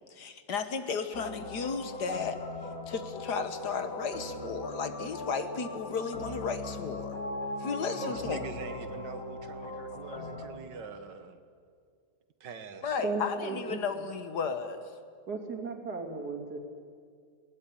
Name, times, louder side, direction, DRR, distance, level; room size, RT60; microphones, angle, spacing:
voice 1, 0.1-2.4 2.9-7.1 7.6-8.5 12.8-14.8, left 5 dB, 70° left, 9 dB, 1.9 m, -34 dB
sound 1, 1.1-10.5, left 2 dB, 50° left, 2.5 m, -39 dB
voice 2, 8.0-11.4 12.4-13.0, right 5 dB, 80° right, 9 dB, 2.0 m, -43 dB
voice 3, 13.0-14.0 15.3-16.6, right 3 dB, 65° right, 2 dB, 3.3 m, -35 dB
20.5 x 19.0 x 10.0 m, 2.1 s
omnidirectional pair, 1.9 m